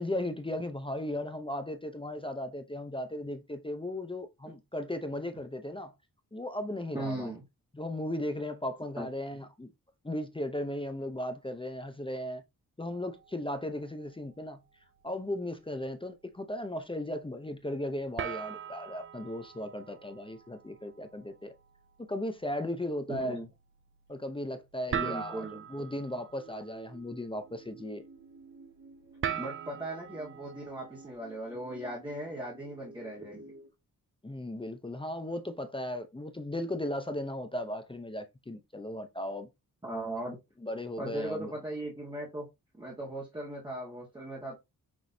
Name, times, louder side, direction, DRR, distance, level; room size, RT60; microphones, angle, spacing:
voice 1, 0.0-5.9 6.3-7.3 7.7-9.7 10.0-12.4 12.8-14.6 15.0-21.5 22.1-23.4 24.1-28.0 34.2-39.5 40.3-40.4 40.6-41.5, left 1 dB, 15° left, 0.6 m, -36 dB
voice 2, 6.9-7.4 9.0-9.1 23.1-23.5 24.9-25.6 29.3-33.5 39.8-40.4 41.0-42.5 42.8-44.6, right 1 dB, 15° right, 1.4 m, -38 dB
sound 1, 12.9-14.5 14.8-15.2 15.8-15.9 18.2-31.1, right 8 dB, 35° right, 0.4 m, -42 dB
sound 2, 26.4-33.7, right 3 dB, 70° right, 1.6 m, -53 dB
6.0 x 3.0 x 2.7 m
wide cardioid pair, 90°, 36 cm